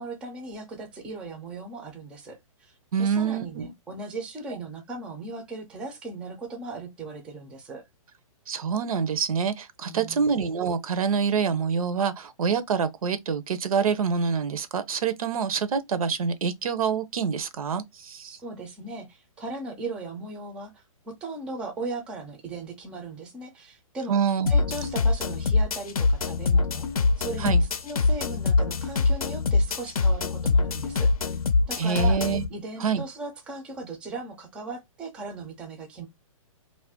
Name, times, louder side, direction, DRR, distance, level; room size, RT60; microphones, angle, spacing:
voice 1, 0.0-2.7 3.0-7.8 9.9-10.3 18.2-24.2 24.5-26.9 27.2-27.6 27.8-31.4 31.7-32.2 32.5-36.1, right 3 dB, 5° right, 0.3 m, -38 dB
voice 2, 2.9-3.7 8.5-18.4 24.1-24.5 27.4-27.6 31.8-32.4 32.8-33.0, right 6 dB, 80° right, 0.6 m, -26 dB
sound 1, 24.5-32.5, left 3 dB, 90° left, 0.6 m, -23 dB
2.4 x 2.1 x 3.4 m
hypercardioid pair, 150°, 18 cm